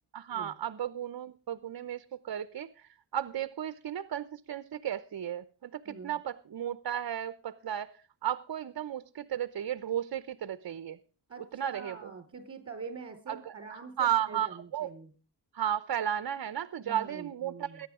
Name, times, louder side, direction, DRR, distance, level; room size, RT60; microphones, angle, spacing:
voice 1, 0.1-7.9 8.2-11.0 11.5-12.1 13.3-14.5 14.7-14.9 15.5-17.9, right 10 dB, 60° right, 14 dB, 0.8 m, -34 dB
voice 2, 5.8-6.2 11.3-15.1 16.8-17.8, right 5 dB, 30° right, 7 dB, 4.7 m, -45 dB
21.5 x 10.0 x 3.7 m, 0.39 s
wide cardioid pair, 140°, 43 cm